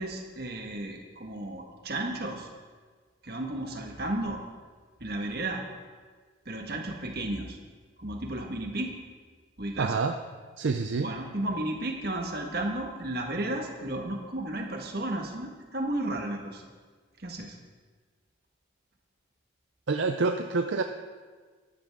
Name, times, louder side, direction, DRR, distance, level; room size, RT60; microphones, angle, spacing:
voice 1, 0.0-2.5 3.2-4.4 5.0-5.6 6.4-7.6 8.0-9.0 9.6-9.9 11.0-16.7 17.2-17.6, right 1 dB, 50° right, 2 dB, 1.5 m, -33 dB
voice 2, 9.8-10.2 10.6-11.1 19.9-20.8, right 4 dB, 70° right, 6 dB, 0.5 m, -27 dB
13.5 x 12.0 x 3.6 m, 1.5 s
head